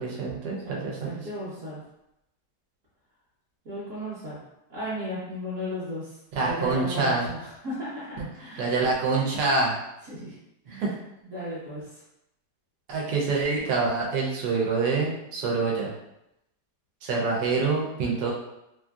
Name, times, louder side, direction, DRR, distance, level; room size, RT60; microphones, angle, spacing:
voice 1, 0.0-1.3 6.3-7.2 8.6-9.8 10.7-10.9 12.9-15.9 17.0-18.3, right 4 dB, 80° right, -3 dB, 1.3 m, -26 dB
voice 2, 0.6-1.8 3.6-4.4 4.7-6.1 6.4-8.7 10.1-10.3 10.6-10.9 11.2-12.0, equal, 55° right, -11 dB, 1.1 m, -35 dB
3.1 x 2.6 x 2.3 m, 0.86 s
omnidirectional pair, 1.8 m